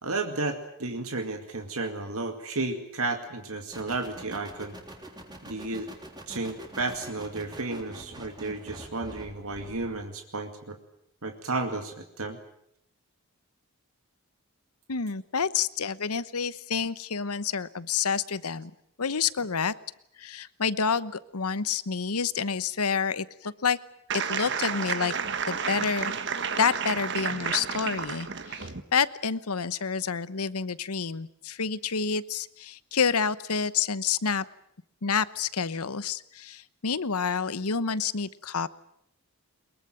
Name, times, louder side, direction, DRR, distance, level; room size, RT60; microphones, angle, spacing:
voice 1, 0.0-4.7 5.4-5.9 6.3-10.8 11.2-12.4, right 3 dB, 75° right, 5 dB, 2.3 m, -33 dB
sound 1, 3.7-10.1, right 1 dB, 20° right, 3.4 m, -45 dB
voice 2, 14.9-18.7 19.0-19.7 20.2-23.8 24.1-25.1 25.4-26.1 26.6-34.4 35.0-38.7, left 6 dB, 85° left, 16 dB, 1.0 m, -28 dB
sound 2, 24.1-28.8, right 6 dB, 50° right, 1.6 m, -31 dB
23.0 x 22.0 x 9.0 m, 0.74 s
head